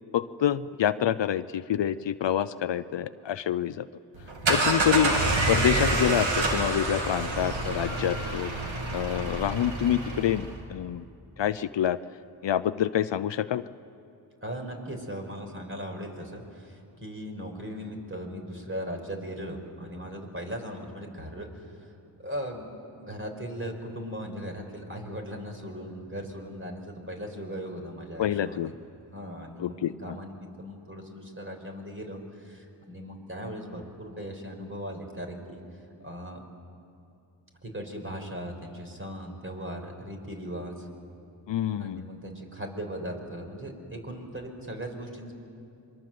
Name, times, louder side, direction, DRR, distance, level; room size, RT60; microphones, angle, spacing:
voice 1, 0.1-3.9 4.5-5.2 5.5-8.5 8.9-11.0 11.4-12.0 12.4-13.6 28.2-28.7 29.6-30.2 41.5-42.0, left 10 dB, 65° left, 15 dB, 0.7 m, -27 dB
sound 1, 4.1-10.5, right 2 dB, 80° right, 3.3 m, -27 dB
voice 2, 14.4-21.9 22.2-22.7 22.9-28.8 29.1-35.6 36.0-36.4 37.6-40.9 41.8-45.3, equal, 25° right, 3 dB, 5.4 m, -38 dB
27.0 x 23.0 x 7.8 m, 2.7 s
cardioid pair, 45°, 46 cm